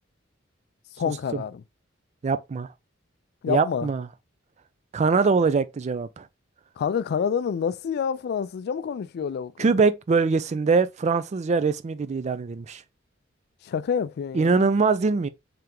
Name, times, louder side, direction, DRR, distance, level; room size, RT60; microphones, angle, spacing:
voice 1, 1.0-1.6 3.4-3.9 6.8-9.7 13.6-14.7, left 7 dB, 55° left, 0.3 m, -28 dB
voice 2, 2.2-2.7 3.5-4.1 4.9-6.2 9.6-12.8 14.3-15.3, right 4 dB, 35° right, 0.3 m, -23 dB
3.3 x 3.0 x 3.7 m
head